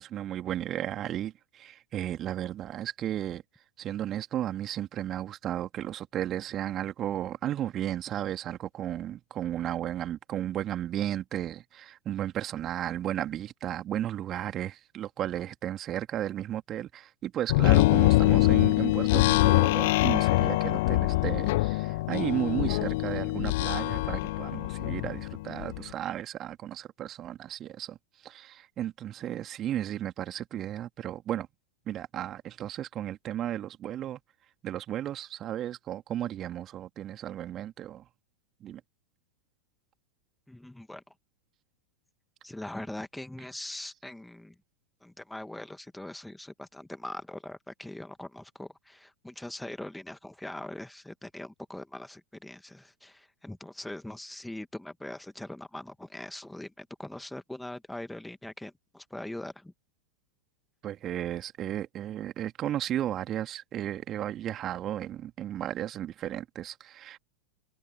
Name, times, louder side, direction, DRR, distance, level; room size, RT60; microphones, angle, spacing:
voice 1, 0.0-3.4 3.8-28.0 28.2-31.5 31.9-34.2 34.6-38.1 38.6-38.8 60.8-67.2, right 11 dB, 30° right, 2.7 m, -34 dB
sound 1, 17.5-25.8, left 20 dB, 50° left, 0.8 m, -24 dB
voice 2, 40.5-41.0 42.4-44.5 45.0-59.7, left 1 dB, 5° left, 2.1 m, -41 dB
figure-of-eight pair, 90°, 0 cm